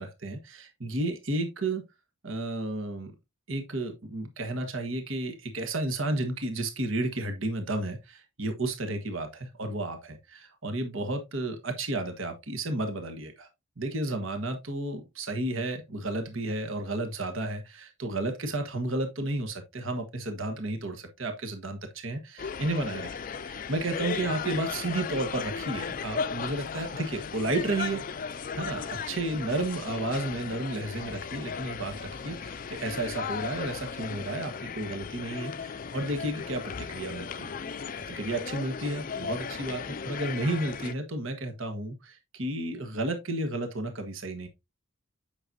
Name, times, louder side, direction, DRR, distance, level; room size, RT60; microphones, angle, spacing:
voice 1, 0.0-1.8 2.2-3.1 3.5-13.5 13.8-23.1 23.4-28.0 28.5-37.6 38.0-44.5, right 2 dB, 65° right, 1.4 m, -32 dB
sound 1, 22.4-40.9, left 6 dB, 40° left, 0.4 m, -36 dB
8.7 x 6.0 x 2.7 m
head